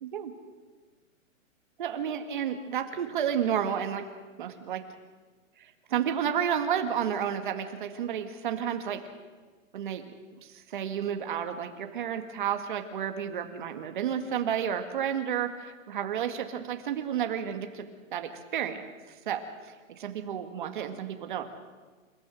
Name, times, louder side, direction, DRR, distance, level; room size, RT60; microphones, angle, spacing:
voice 1, 0.0-0.3 1.8-4.0 4.4-4.8 5.9-9.0 9.7-10.1 10.7-17.9 18.1-18.8 19.3-19.4 19.9-21.4, right 9 dB, 40° right, 6 dB, 2.1 m, -31 dB
28.5 x 15.0 x 7.9 m, 1.4 s
hypercardioid pair, 175°, 40 cm